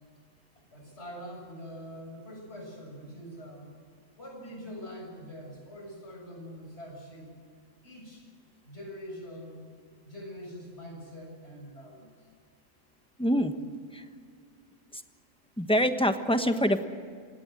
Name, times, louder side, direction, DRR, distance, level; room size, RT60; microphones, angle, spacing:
voice 1, 0.7-3.7 4.1-7.3 7.8-8.2 8.6-9.6 10.0-12.3, equal, 55° left, 1 dB, 7.6 m, -44 dB
voice 2, 13.2-13.5 13.9-14.0 14.9-15.0 15.6-16.8, equal, 5° left, 7 dB, 1.2 m, -25 dB
28.0 x 18.0 x 7.7 m, 2.1 s
omnidirectional pair, 1.4 m